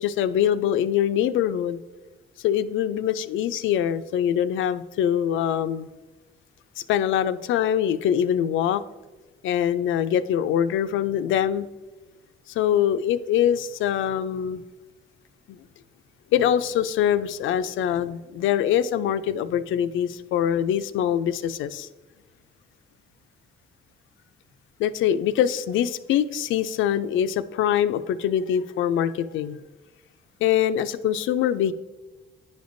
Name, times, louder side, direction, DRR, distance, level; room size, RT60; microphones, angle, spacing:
voice 1, 0.0-1.8 2.4-5.9 6.9-8.8 9.4-11.7 12.5-14.6 15.5-15.6 16.3-21.9 24.8-29.6 30.4-31.7, left 10 dB, 80° left, 13 dB, 0.4 m, -23 dB
9.9 x 5.2 x 2.6 m, 1.2 s
cardioid pair, 90°, 20 cm